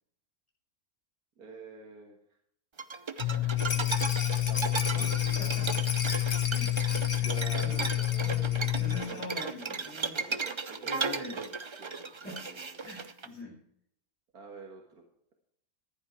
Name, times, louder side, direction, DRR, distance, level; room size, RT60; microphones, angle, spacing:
voice 1, 1.4-2.2 4.3-5.4 7.1-9.2 10.1-12.8 14.3-15.0, right 3 dB, 85° right, 1 dB, 2.3 m, -47 dB
sound 1, 2.8-13.3, right 4 dB, 45° right, 0.3 m, -36 dB
sound 2, 3.2-9.0, left 16 dB, 80° left, 1.8 m, -29 dB
voice 2, 3.2-4.0 5.4-5.8 6.5-7.3 7.6-7.9 8.2-10.4 10.8-11.5 12.2-12.5 12.8-13.6, left 1 dB, 5° left, -8 dB, 6.5 m, -44 dB
Rattle, 3.6-9.3 9.5-9.6 9.9-10.0, left 4 dB, 50° left, 1.6 m, -37 dB
14.5 x 11.0 x 4.7 m, 0.69 s
omnidirectional pair, 1.5 m